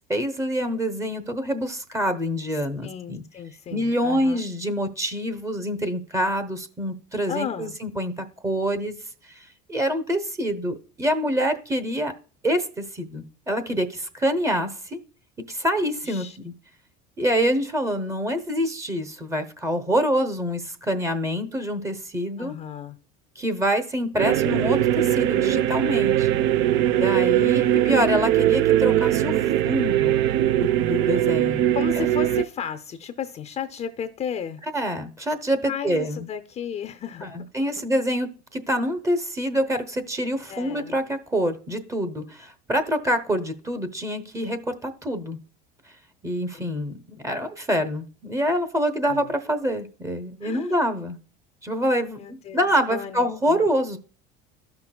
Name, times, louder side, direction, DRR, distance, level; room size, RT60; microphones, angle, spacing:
voice 1, 0.1-3.2 3.7-8.9 9.3-9.4 9.7-12.1 12.4-15.0 15.5-16.5 17.2-22.5 23.4-26.3 26.9-30.2 30.5-31.7 31.9-32.0 34.7-36.3 37.2-45.4 46.2-51.2 51.6-54.0, equal, 15° right, 0.8 m, -26 dB
voice 2, 2.8-4.4 7.3-7.7 16.0-16.4 22.4-23.0 31.7-34.6 35.6-37.5 40.5-41.0 46.5-46.9 49.1-49.3 50.4-50.8 52.1-53.6, left 7 dB, 30° left, 0.5 m, -34 dB
sound 1, 24.2-32.4, right 12 dB, 60° right, 0.4 m, -21 dB
13.0 x 5.8 x 2.2 m
cardioid pair, 125°, 21 cm